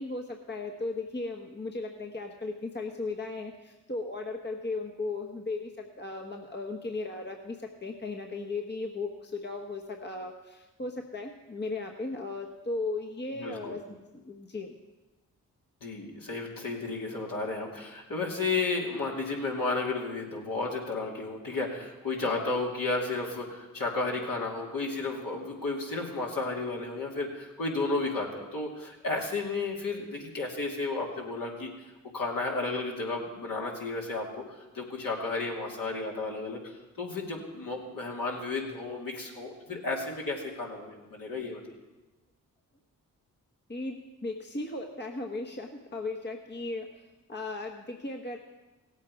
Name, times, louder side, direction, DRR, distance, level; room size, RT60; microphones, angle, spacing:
voice 1, 0.0-13.8 14.1-14.8 43.7-46.9 47.3-48.4, left 3 dB, 30° left, 2 dB, 1.2 m, -36 dB
voice 2, 13.3-13.8 15.8-31.7 32.1-41.6, left 3 dB, 65° left, -2 dB, 2.7 m, -33 dB
16.5 x 8.3 x 4.9 m, 1.1 s
supercardioid pair, 40°, 37 cm